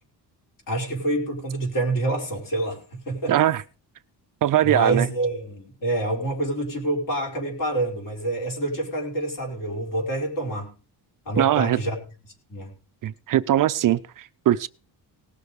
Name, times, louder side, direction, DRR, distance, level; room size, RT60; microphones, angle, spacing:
voice 1, 0.7-3.4 4.6-10.7 11.2-11.9 12.5-12.7, right 2 dB, 50° left, 4.8 m, -27 dB
voice 2, 3.3-3.6 4.4-5.1 11.4-11.8 13.0-14.7, right 12 dB, 50° right, 0.5 m, -21 dB
19.0 x 6.5 x 5.2 m
cardioid pair, 165°, 43 cm